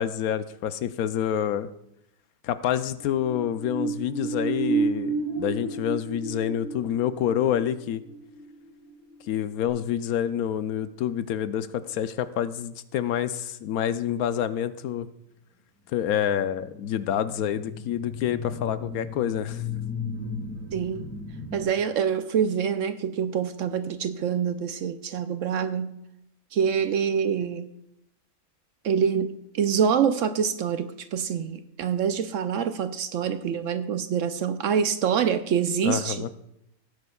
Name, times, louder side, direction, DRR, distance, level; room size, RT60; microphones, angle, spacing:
voice 1, 0.0-1.7 2.4-8.0 9.3-15.1 15.9-19.6 35.8-36.3, left 10 dB, 75° left, 13 dB, 1.0 m, -27 dB
sound 1, 3.0-9.3 9.7-9.8, right 4 dB, 25° left, 5.0 m, -31 dB
sound 2, 17.2-21.6, left 5 dB, 10° left, 1.9 m, -36 dB
voice 2, 20.7-21.0 21.5-26.0 26.5-27.7 28.8-36.2, right 7 dB, 70° right, 10 dB, 0.8 m, -26 dB
17.5 x 9.4 x 2.3 m, 0.80 s
omnidirectional pair, 1.6 m